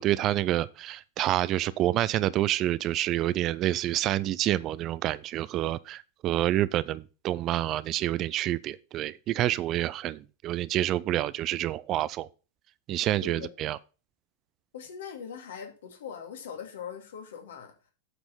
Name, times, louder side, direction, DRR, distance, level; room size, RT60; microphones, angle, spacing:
voice 1, 0.0-12.3 12.9-13.8, right 13 dB, 35° right, 0.4 m, -28 dB
voice 2, 14.7-17.7, left 7 dB, 60° left, 2.4 m, -41 dB
8.4 x 6.1 x 5.6 m
figure-of-eight pair, 90°, 0 cm